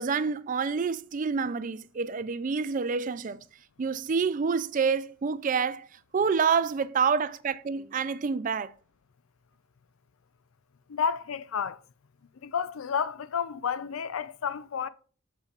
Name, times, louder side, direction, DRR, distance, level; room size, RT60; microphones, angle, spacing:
voice 1, 0.0-3.4 3.8-5.9 6.1-8.7, right 5 dB, 40° right, 0.4 m, -27 dB
voice 2, 10.9-11.8 12.4-14.9, left 7 dB, 80° left, 0.4 m, -31 dB
8.2 x 6.7 x 2.4 m
head